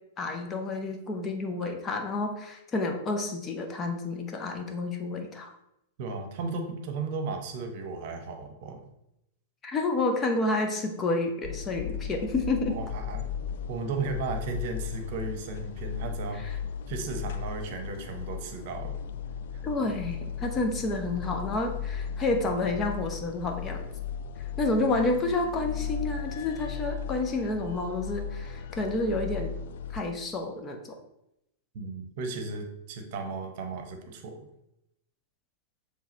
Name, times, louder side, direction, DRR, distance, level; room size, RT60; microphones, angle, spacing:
voice 1, 0.2-5.5 9.6-12.8 16.3-16.5 19.6-23.9 24.6-29.5 29.9-31.0, left 2 dB, 25° left, 3 dB, 0.9 m, -29 dB
voice 2, 6.0-8.8 12.7-13.3 13.7-16.4 16.9-18.9 19.5-19.6 31.7-34.5, right 4 dB, 50° right, 6 dB, 1.0 m, -35 dB
sound 1, 11.4-30.0, left 8 dB, 55° left, 0.4 m, -36 dB
7.2 x 3.5 x 4.2 m, 0.83 s
figure-of-eight pair, 95°, 0 cm